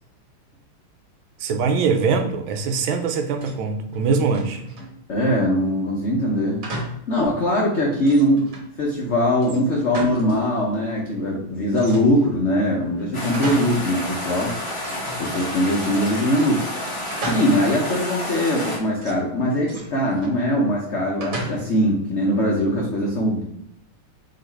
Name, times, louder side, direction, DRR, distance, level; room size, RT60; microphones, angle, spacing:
voice 1, 1.4-4.6, right 5 dB, 80° right, 5 dB, 1.4 m, -22 dB
sound 1, 3.1-3.6 3.9-5.0 6.6-7.1 7.5-7.6 8.0-8.7 9.4-10.5 10.7-10.8 11.7-12.4 12.9-13.9 14.2-14.3 14.8-15.8 17.1-17.8 19.0-20.4 21.2-21.9, right 1 dB, 50° right, 1.2 m, -34 dB
voice 2, 5.1-6.6 7.1-8.5 8.8-14.5 15.2-16.6 17.2-23.4, equal, 75° left, -3 dB, 0.6 m, -21 dB
sound 2, 13.1-18.8, left 1 dB, 25° left, 0.6 m, -30 dB
3.9 x 2.9 x 4.4 m, 0.76 s
omnidirectional pair, 2.3 m